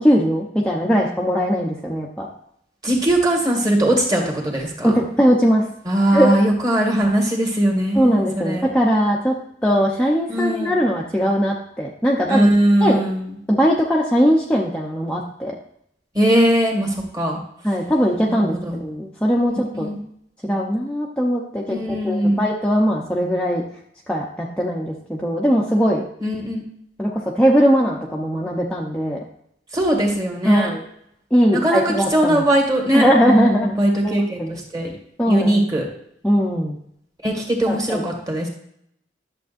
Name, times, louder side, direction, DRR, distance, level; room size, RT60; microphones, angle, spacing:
voice 1, 0.0-2.3 4.8-5.6 6.1-6.4 7.9-9.3 9.6-12.5 12.8-13.0 13.5-15.6 17.6-19.9 20.4-21.8 22.0-23.6 24.1-26.0 27.0-29.2 30.4-30.8 31.3-32.4 32.9-33.7 34.0-34.1 34.4-34.5 35.2-35.6 36.2-36.8 37.7-38.0, equal, 5° left, -3 dB, 0.8 m, -19 dB
voice 2, 2.8-5.0 5.9-8.7 10.3-10.7 12.3-13.3 16.1-17.4 18.3-18.8 19.7-20.0 21.7-22.5 26.2-26.6 29.7-30.7 31.5-34.9 35.3-35.8 37.2-38.5, right 1 dB, 20° right, 0 dB, 2.1 m, -20 dB
11.0 x 7.2 x 2.6 m, 0.72 s
head